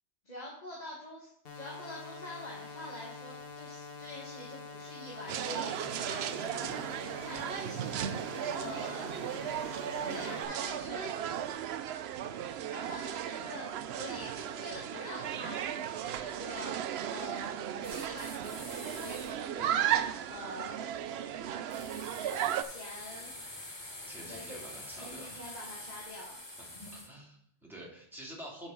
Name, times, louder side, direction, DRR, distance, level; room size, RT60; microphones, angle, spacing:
voice 1, 0.2-6.8 7.2-7.8 8.5-9.1 9.5-11.1 12.6-15.6 15.9-16.8 17.1-20.8 22.6-23.3 24.2-24.6 24.9-26.3 26.7-27.1, left 1 dB, 40° left, -4 dB, 1.6 m, -46 dB
sound 1, 1.4-10.4, left 4 dB, 65° left, 1.3 m, -46 dB
sound 2, 5.3-22.6, right 10 dB, 75° right, 0.8 m, -35 dB
sound 3, 17.8-19.3 21.7-27.1, left 1 dB, 25° left, 1.2 m, -46 dB
voice 2, 24.1-25.5 26.6-28.7, right 1 dB, ahead, -4 dB, 2.5 m, -48 dB
10.0 x 5.3 x 3.8 m, 0.72 s
omnidirectional pair, 1.1 m